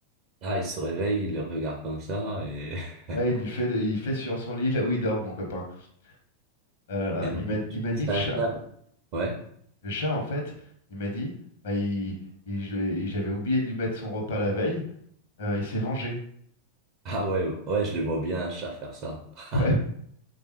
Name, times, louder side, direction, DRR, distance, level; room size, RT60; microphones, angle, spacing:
voice 1, 0.4-3.2 7.2-7.6 8.1-8.6 9.1-9.4 17.0-19.6, right 2 dB, 45° right, 1 dB, 0.4 m, -30 dB
voice 2, 3.1-6.1 6.9-8.4 9.8-10.5 10.9-11.3 11.6-12.1 12.5-14.8 15.4-16.2 19.5-19.7, left 1 dB, 60° left, 0 dB, 0.8 m, -28 dB
3.2 x 2.3 x 3.0 m, 0.65 s
figure-of-eight pair, 90°, 0 cm